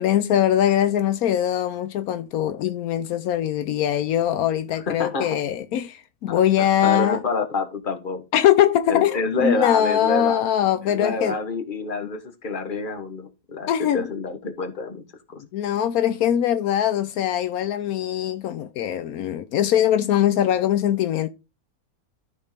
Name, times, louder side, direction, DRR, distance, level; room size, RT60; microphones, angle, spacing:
voice 1, 0.0-7.2 8.3-11.4 13.7-14.1 15.5-21.3, left 10 dB, 85° left, 1.1 m, -22 dB
voice 2, 4.7-5.4 6.3-8.2 8.9-10.4 10.8-15.0 15.3-15.4, left 3 dB, 35° left, 1.4 m, -28 dB
13.0 x 4.5 x 3.4 m
omnidirectional pair, 1.5 m